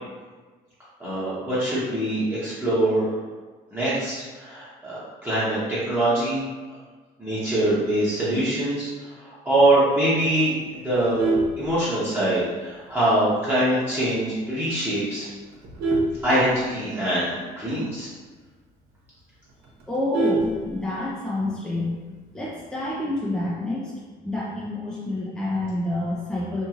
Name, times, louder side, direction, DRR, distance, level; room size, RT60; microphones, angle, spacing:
voice 1, 1.0-3.1 3.7-5.6 5.9-6.4 7.2-8.9 9.2-11.2 11.6-15.3 16.2-18.1, right 1 dB, 10° right, -12 dB, 0.9 m, -23 dB
Vehicle horn car horn honking, 10.9-12.4 12.8-13.1 13.4-13.5 13.9-14.0 14.3-14.7 15.2-17.1 17.4-17.5 17.8-17.9 18.3-18.4 18.8-18.9 19.1-21.2 22.4-22.8, right 2 dB, 90° right, 0.6 m, -27 dB
voice 2, 19.9-22.0 22.3-26.7, left 2 dB, 5° left, -6 dB, 0.4 m, -28 dB
3.0 x 2.6 x 2.4 m, 1.4 s
cardioid pair, 110°, 17 cm